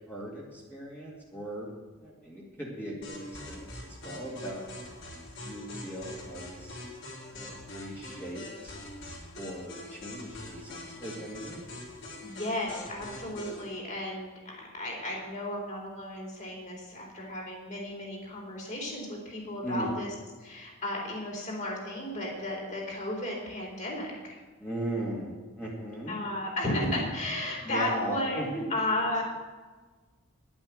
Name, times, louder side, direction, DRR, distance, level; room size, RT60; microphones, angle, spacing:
voice 1, 0.1-1.7 2.0-4.7 5.4-6.8 7.3-8.8 9.4-11.6 19.6-19.9 24.6-26.2 27.6-28.6, right 1 dB, 10° left, -5 dB, 2.2 m, -38 dB
sound 1, 3.0-13.6, left 2 dB, 60° left, 4.9 m, -43 dB
voice 2, 12.2-20.1 20.4-24.4 26.1-29.2, left 1 dB, 35° left, -2 dB, 4.0 m, -34 dB
11.5 x 8.8 x 7.6 m, 1.3 s
head